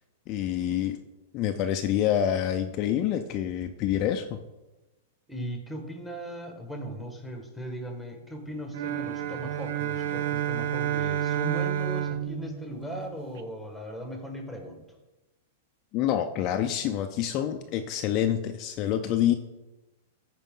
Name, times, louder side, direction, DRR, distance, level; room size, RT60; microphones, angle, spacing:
voice 1, 0.3-1.0 1.3-4.4 15.9-19.3, left 10 dB, 35° left, 5 dB, 0.5 m, -27 dB
voice 2, 5.3-14.8, equal, ahead, 3 dB, 1.5 m, -38 dB
sound 1, 8.7-13.4, right 10 dB, 65° right, 0.6 m, -30 dB
14.5 x 5.0 x 3.8 m, 1.1 s
hypercardioid pair, 140°, 0 cm